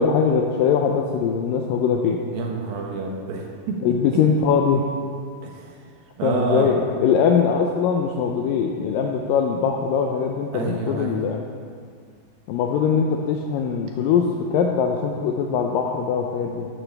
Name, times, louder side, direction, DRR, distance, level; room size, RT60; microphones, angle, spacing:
voice 1, 0.0-2.2 3.8-4.9 6.2-11.4 12.5-16.7, left 6 dB, 85° left, 2 dB, 2.0 m, -21 dB
voice 2, 2.3-4.2 5.4-5.8 6.2-6.7 10.5-11.2, right 4 dB, 70° right, 0 dB, 2.8 m, -28 dB
12.5 x 12.0 x 3.4 m, 2.1 s
omnidirectional pair, 4.7 m